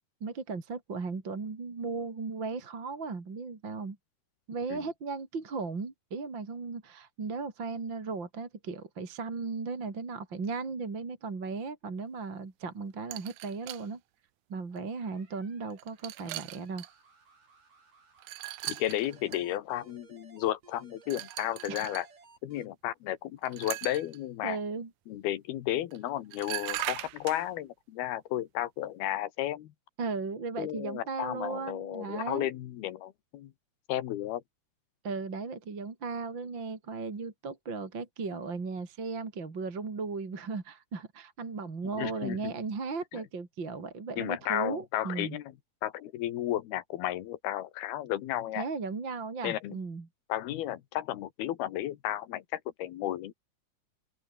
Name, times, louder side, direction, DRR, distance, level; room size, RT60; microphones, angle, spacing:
voice 1, 0.2-4.0 4.5-14.0 14.5-16.8 21.7-21.9 24.4-24.9 30.0-32.5 35.0-45.4 48.6-50.1, right 4 dB, 30° right, 3.7 m, -36 dB
sound 1, 13.1-13.9 14.7-14.8 15.7-16.9 18.2-19.4 21.1-22.1 23.5-24.2 25.9-26.0 26.3-27.4, right 18 dB, 90° right, 1.7 m, -39 dB
sound 2, 15.0-22.7, right 4 dB, 60° right, 8.2 m, -59 dB
voice 2, 18.7-22.1 22.4-24.6 25.1-29.7 30.6-33.5 33.9-34.4 41.9-42.5 43.1-43.2 44.2-45.5 45.8-48.7 49.4-49.8 50.3-53.3, left 13 dB, 85° left, 3.4 m, -33 dB
open air
omnidirectional pair, 4.3 m